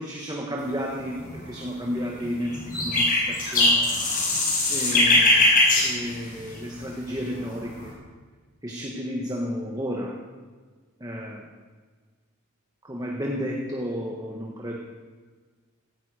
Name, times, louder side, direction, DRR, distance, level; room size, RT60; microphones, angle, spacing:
voice 1, 0.0-4.1 4.7-5.5 5.8-8.0 8.6-10.2 11.0-11.5 12.8-14.8, equal, 15° right, -1 dB, 1.6 m, -32 dB
sound 1, 1.0-1.5 2.2-6.8 7.2-7.9, left 2 dB, 40° left, 5.7 m, -21 dB
17.5 x 15.0 x 5.1 m, 1.4 s
head